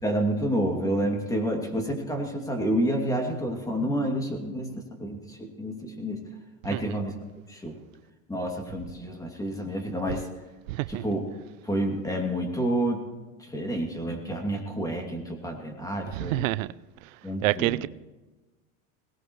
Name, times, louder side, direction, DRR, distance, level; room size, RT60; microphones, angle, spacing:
voice 1, 0.0-6.2 6.6-7.2 7.5-7.8 8.3-10.3 10.9-11.3 11.6-13.0 13.4-16.5 17.2-17.8, right 1 dB, 10° left, 2.6 m, -29 dB
voice 2, 10.7-11.0 16.1-16.7 17.4-17.9, right 19 dB, 90° right, 0.5 m, -27 dB
22.0 x 18.5 x 3.2 m
supercardioid pair, 115°, 38 cm